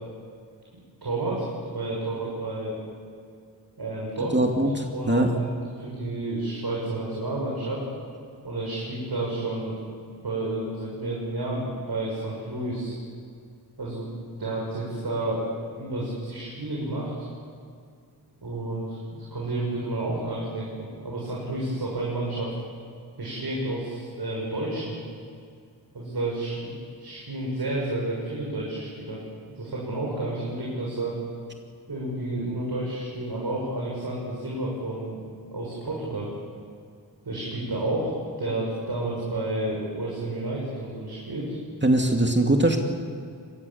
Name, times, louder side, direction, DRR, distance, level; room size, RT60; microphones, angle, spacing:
voice 1, 1.0-2.8 3.8-4.5 4.9-7.8 8.4-9.8 10.2-13.0 13.8-14.1 14.4-15.4 15.8-17.3 18.4-22.5 23.2-25.0 25.9-31.1 31.9-36.3 37.2-41.6, right 2 dB, 60° right, -4 dB, 6.7 m, -31 dB
voice 2, 4.3-5.3 41.8-42.8, right 1 dB, 25° right, 2 dB, 2.6 m, -21 dB
24.5 x 20.0 x 7.3 m, 2.3 s
cardioid pair, 50°, 42 cm